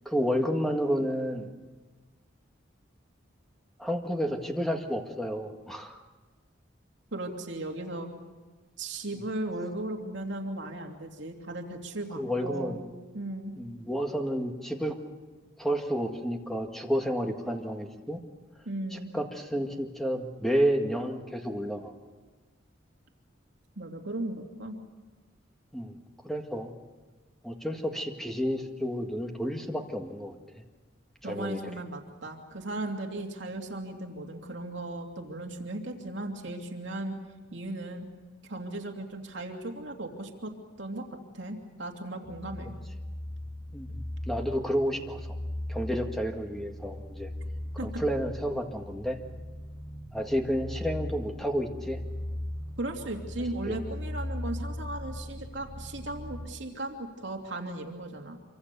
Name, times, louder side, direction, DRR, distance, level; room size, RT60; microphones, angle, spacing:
voice 1, 0.1-1.5 3.8-6.0 12.1-12.9 13.6-15.0 15.6-18.2 18.9-21.9 25.7-26.0 26.2-26.7 27.4-30.4 31.2-31.6 43.7-45.4 45.7-47.3 47.8-49.2 50.1-52.0 53.7-53.8, equal, ahead, 3 dB, 1.8 m, -30 dB
voice 2, 7.1-8.1 8.8-12.8 13.1-13.5 18.7-19.1 23.8-24.8 31.2-37.1 37.5-38.1 38.5-40.5 40.8-41.0 41.3-42.7 47.8-47.9 52.8-58.4, right 1 dB, 65° right, 2 dB, 2.8 m, -36 dB
sound 1, 42.2-56.5, left 1 dB, 75° left, 4.3 m, -38 dB
26.5 x 25.0 x 6.9 m, 1.3 s
head